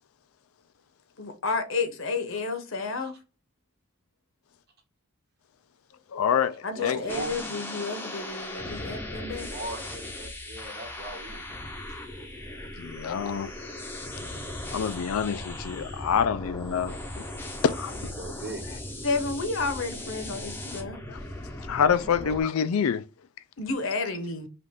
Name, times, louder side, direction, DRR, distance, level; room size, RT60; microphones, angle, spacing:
voice 1, 1.2-3.1 6.6-9.5 19.0-21.0 23.6-24.5, left 3 dB, 65° left, 0.9 m, -31 dB
voice 2, 6.1-7.1 12.8-13.5 14.7-17.3 17.6-18.1 21.1-21.2 21.6-23.1, left 7 dB, 80° left, 0.4 m, -27 dB
voice 3, 6.7-7.3 9.5-11.4 17.6-18.9 21.9-22.3, right 2 dB, 50° right, 1.7 m, -40 dB
sound 1, 7.1-22.4, left 1 dB, 10° left, 0.6 m, -38 dB
5.2 x 2.5 x 3.5 m
head